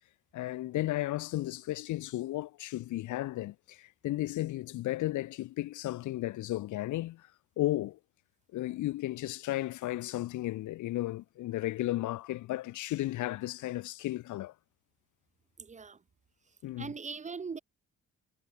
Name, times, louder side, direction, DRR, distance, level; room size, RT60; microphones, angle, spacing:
voice 1, 0.3-7.3 7.6-8.0 8.5-14.5 16.6-16.9, left 16 dB, 75° left, 0.7 m, -34 dB
voice 2, 15.6-16.0 16.8-17.6, right 5 dB, 25° right, 0.6 m, -40 dB
cardioid pair, 90°, 30 cm